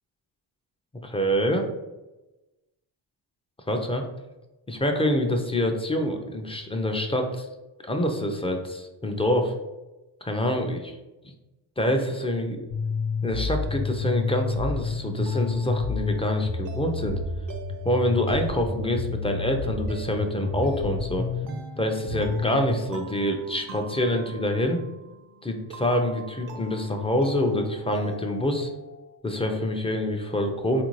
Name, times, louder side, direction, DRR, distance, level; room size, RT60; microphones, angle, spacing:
voice 1, 1.0-1.6 3.7-4.1 4.7-7.5 7.8-9.5 10.2-10.8 11.8-12.6 13.2-17.2 17.8-21.3 21.8-24.8 25.4-28.7 29.2-30.8, left 1 dB, 15° left, 4 dB, 0.4 m, -26 dB
sound 1, 12.7-22.7, left 4 dB, 60° left, 0.7 m, -30 dB
sound 2, 14.4-29.2, right 3 dB, 45° right, 0.5 m, -44 dB
3.5 x 2.5 x 3.0 m, 1.1 s
cardioid pair, 70°, 48 cm